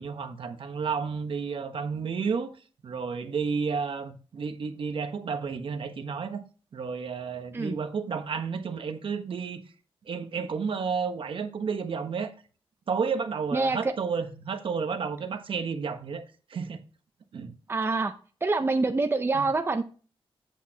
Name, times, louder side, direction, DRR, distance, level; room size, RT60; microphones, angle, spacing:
voice 1, 0.0-2.5 2.8-6.4 6.7-9.6 10.1-12.3 12.9-16.2 16.5-16.8 17.3-17.5 19.3-19.5, right 5 dB, 65° right, 1.1 m, -31 dB
voice 2, 17.7-18.1 18.4-19.8, right 3 dB, 25° right, 0.6 m, -26 dB
8.4 x 8.2 x 2.9 m
wide cardioid pair, 115°, 10 cm